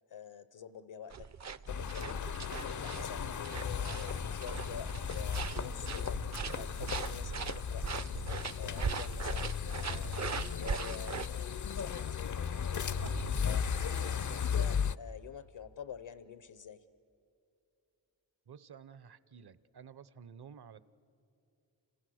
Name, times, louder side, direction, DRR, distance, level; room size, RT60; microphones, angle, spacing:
voice 1, 0.1-1.3 1.7-2.3 2.8-6.2 6.5-7.8 8.6-12.9 13.5-16.8, left 8 dB, 80° left, 12 dB, 0.9 m, -47 dB
sound 1, 1.1-11.3, right 6 dB, 40° right, 0.5 m, -40 dB
sound 2, 1.7-15.0, left 7 dB, 45° left, 0.5 m, -36 dB
sound 3, 12.4-15.8, right 4 dB, 80° right, 1.9 m, -46 dB
voice 2, 18.5-20.8, right 7 dB, 60° right, 16 dB, 0.9 m, -52 dB
29.5 x 27.5 x 6.4 m, 2.6 s
wide cardioid pair, 70°, 44 cm